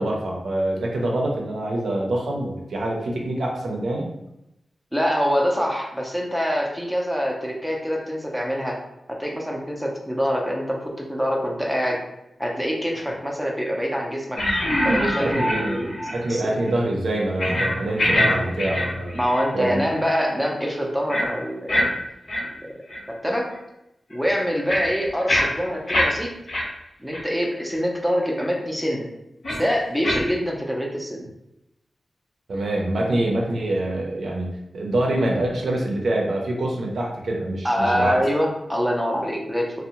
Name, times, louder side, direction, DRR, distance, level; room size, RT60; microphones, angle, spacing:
voice 1, 0.0-4.1 15.2-19.2 19.5-19.8 32.5-38.2, right 1 dB, 75° right, -1 dB, 0.5 m, -25 dB
voice 2, 4.9-8.8 9.1-12.0 12.4-14.4 14.8-16.0 16.3-16.5 19.1-21.9 22.6-22.8 23.2-23.5 24.1-26.3 27.0-29.0 29.5-31.2 37.6-39.8, equal, ahead, -1 dB, 0.4 m, -25 dB
sound 1, 14.4-16.3 16.6-16.7 17.4-17.7 18.0-18.3 18.6-19.4 19.8-20.0 21.1-21.2 21.7-21.9 22.3-22.4 22.9-23.0 23.5-23.6 24.1-26.0 26.5-26.6 27.1-27.2 27.7-27.8 29.4-29.6 30.0-30.2, left 1 dB, 60° left, 0.8 m, -23 dB
2.6 x 2.0 x 2.8 m, 0.87 s
wide cardioid pair, 105°, 0 cm